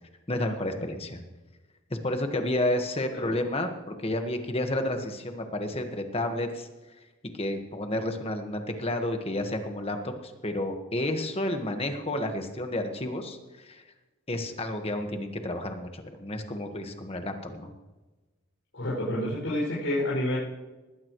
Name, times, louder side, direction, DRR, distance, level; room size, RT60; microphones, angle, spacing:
voice 1, 0.3-1.2 1.9-6.7 7.3-13.8 14.3-17.7, left 1 dB, 30° left, 5 dB, 1.5 m, -31 dB
voice 2, 18.7-20.4, left 1 dB, 75° left, -8 dB, 6.2 m, -28 dB
20.5 x 16.0 x 3.2 m, 1.2 s
head